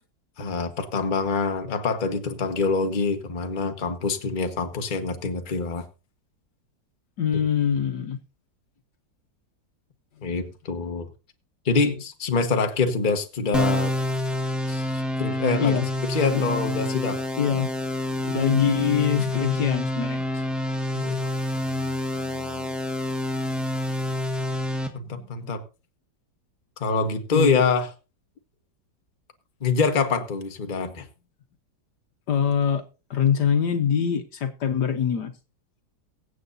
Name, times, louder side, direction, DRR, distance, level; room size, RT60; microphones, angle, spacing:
voice 1, 0.4-5.8 10.2-11.1 11.6-13.9 14.7-15.8 16.1-17.2 20.9-21.2 21.5-21.7 22.1-22.7 24.9-25.6 26.8-27.9 29.6-31.0, left 4 dB, 30° left, 1.2 m, -25 dB
voice 2, 7.2-8.2 15.6-15.9 16.3-16.5 17.4-17.7 18.1-20.4 25.0-25.3 27.3-27.6 32.3-32.8 33.1-35.3, left 8 dB, 65° left, 1.5 m, -24 dB
sound 1, 13.5-24.9, left 1 dB, ahead, 1.4 m, -27 dB
23.0 x 8.0 x 2.7 m
omnidirectional pair, 2.0 m